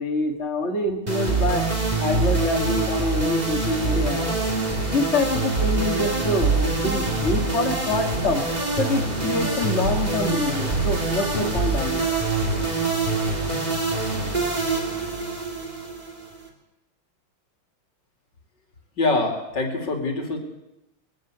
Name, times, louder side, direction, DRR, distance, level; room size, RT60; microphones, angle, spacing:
voice 1, 0.0-1.6 2.0-4.3 4.9-12.0, left 2 dB, 30° left, 0 dB, 2.3 m, -26 dB
sound 1, 1.1-16.5, right 3 dB, 20° right, 3.2 m, -25 dB
voice 2, 19.0-20.4, left 3 dB, 55° left, 2 dB, 3.7 m, -24 dB
22.0 x 16.0 x 8.1 m, 0.90 s
omnidirectional pair, 2.3 m